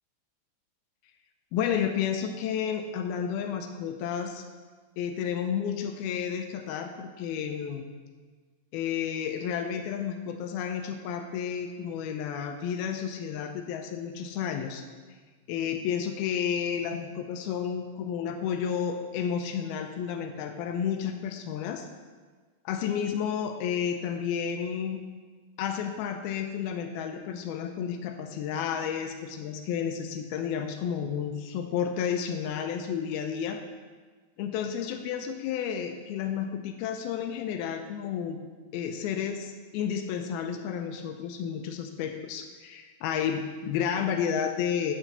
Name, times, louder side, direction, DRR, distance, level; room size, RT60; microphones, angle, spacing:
voice 1, 1.5-4.4 5.0-7.9 8.7-14.8 15.5-21.9 22.7-25.0 25.6-33.6 34.4-38.4 38.7-44.9, left 8 dB, 85° left, 5 dB, 2.2 m, -31 dB
9.6 x 5.8 x 6.8 m, 1.4 s
omnidirectional pair, 5.1 m